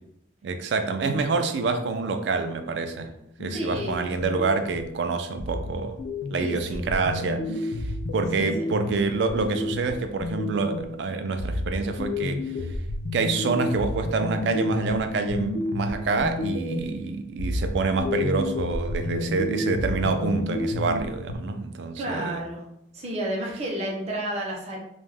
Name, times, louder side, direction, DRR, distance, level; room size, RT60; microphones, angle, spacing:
voice 1, 0.4-3.1 3.4-6.0 6.3-7.8 8.1-12.5 13.1-22.4, right 4 dB, 70° right, 0.3 m, -27 dB
sound 1, 3.4-5.0 5.4-11.0 11.4-17.0 17.4-21.4, left 2 dB, 70° left, 0.3 m, -30 dB
voice 2, 3.5-4.1 6.4-6.8 8.4-8.7 22.0-22.6 22.9-24.8, right 1 dB, 35° right, 0.7 m, -31 dB
2.3 x 2.1 x 3.2 m
head